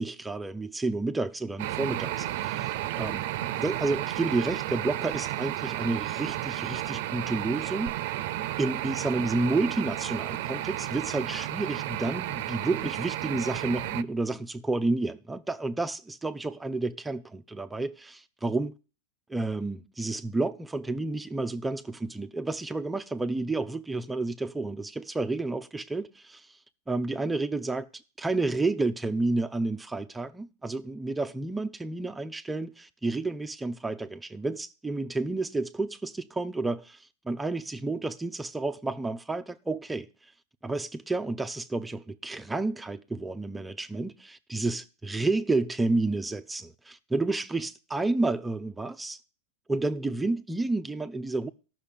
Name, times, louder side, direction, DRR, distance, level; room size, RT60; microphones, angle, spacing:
voice 1, 0.0-3.3 3.5-7.9 8.6-18.7 19.3-26.6 26.9-40.1 40.6-49.2 49.7-51.5, right 2 dB, 10° right, 0.6 m, -30 dB
sound 1, 1.6-14.0, right 14 dB, 65° right, 0.6 m, -32 dB
12.5 x 6.2 x 6.7 m
hypercardioid pair, 120°, 0 cm